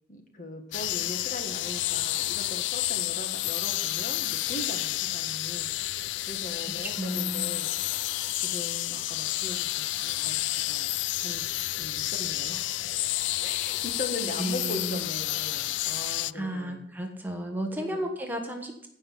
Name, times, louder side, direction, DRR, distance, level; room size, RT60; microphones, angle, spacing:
voice 1, 0.1-5.7 5.9-7.7 8.3-10.9 11.2-11.5 11.8-12.6 13.4-16.8 17.8-18.1, left 1 dB, 45° left, 4 dB, 1.8 m, -39 dB
sound 1, 0.7-16.3, left 15 dB, 80° left, 0.3 m, -30 dB
voice 2, 6.7-7.5 14.4-15.0 16.3-18.9, right 1 dB, 10° right, 3 dB, 1.2 m, -33 dB
15.5 x 5.4 x 7.4 m, 0.73 s
head